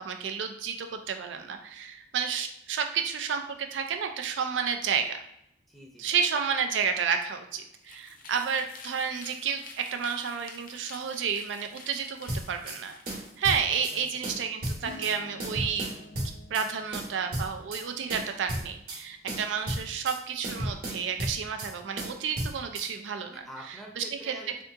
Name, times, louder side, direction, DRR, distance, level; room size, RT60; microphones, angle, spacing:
voice 1, 0.0-5.2 6.0-12.9 13.4-15.9 16.5-23.3 24.0-24.1, right 6 dB, 90° right, 6 dB, 0.4 m, -31 dB
voice 2, 5.7-6.1 13.7-14.0 23.2-24.6, right 1 dB, ahead, -2 dB, 0.6 m, -46 dB
sound 1, 7.7-13.4, left 4 dB, 50° left, 0.5 m, -49 dB
sound 2, 12.3-12.8 13.1-14.0 14.2-15.1 15.4-16.7 16.9-17.8 18.1-19.0 19.3-20.2 20.4-21.7 22.0-22.9, right 1 dB, 55° right, 0.9 m, -34 dB
Acoustic guitar / Strum, 14.8-19.4 21.3-21.4, left 1 dB, 70° left, 0.8 m, -49 dB
2.7 x 2.3 x 3.5 m, 0.75 s
head